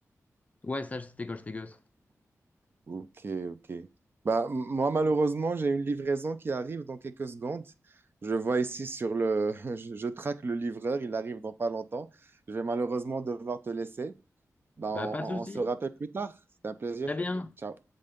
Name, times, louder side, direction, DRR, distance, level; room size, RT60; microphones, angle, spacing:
voice 1, 0.6-1.8 14.9-15.6 17.1-17.5, left 2 dB, 25° left, 0.4 m, -34 dB
voice 2, 2.9-3.9 4.2-7.6 8.2-12.1 12.5-14.1 14.8-16.3 16.6-17.1 17.6-17.7, right 3 dB, 40° right, 0.6 m, -31 dB
7.8 x 3.8 x 5.2 m
wide cardioid pair, 145°, 6 cm